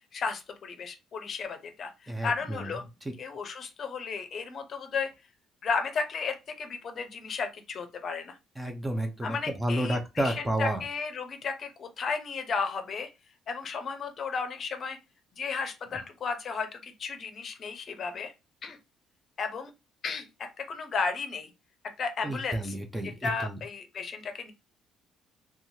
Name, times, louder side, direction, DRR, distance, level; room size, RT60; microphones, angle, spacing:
voice 1, 0.1-2.8 3.2-5.1 5.6-8.4 9.2-13.1 13.5-15.0 15.4-18.3 18.6-18.8 19.4-19.7 20.0-20.3 20.6-21.5 22.0-22.7 23.2-24.5, left 5 dB, 45° left, 7 dB, 0.6 m, -34 dB
voice 2, 2.1-2.7 3.0-3.1 8.6-10.8 22.2-23.6, right 1 dB, 5° right, 4 dB, 0.5 m, -31 dB
3.0 x 2.3 x 2.7 m, 0.25 s
cardioid pair, 125°, 0 cm